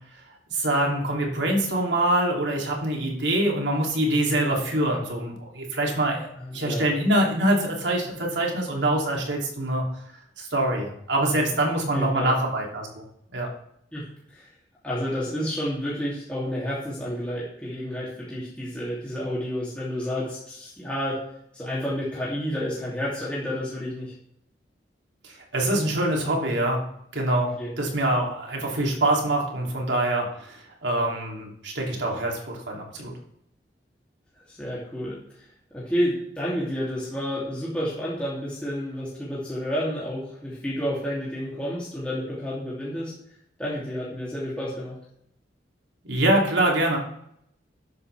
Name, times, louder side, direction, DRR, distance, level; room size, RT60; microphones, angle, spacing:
voice 1, 0.5-6.3 6.5-9.8 10.4-13.0 13.3-13.5 25.5-26.8 27.1-33.1 46.1-47.0, right 1 dB, 80° right, 0 dB, 2.9 m, -24 dB
voice 2, 6.4-6.9 11.9-12.3 13.9-14.5 14.8-21.2 21.5-24.1 27.6-27.7 34.5-35.2 35.7-43.1 43.6-45.0, equal, 5° left, -9 dB, 2.8 m, -30 dB
13.0 x 9.5 x 3.4 m, 0.72 s
head